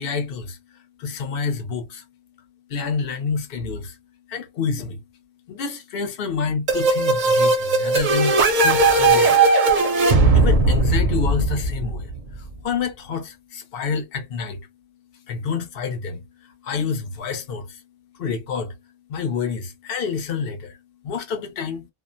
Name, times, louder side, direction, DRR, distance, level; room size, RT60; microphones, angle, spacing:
voice 1, 0.0-2.0 2.7-4.0 4.3-5.0 5.5-9.5 10.0-14.6 15.1-17.8 18.1-21.9, left 5 dB, 55° left, 0.8 m, -28 dB
sound 1, 6.7-12.3, right 3 dB, 50° right, 0.7 m, -18 dB
2.4 x 2.0 x 2.5 m
omnidirectional pair, 1.3 m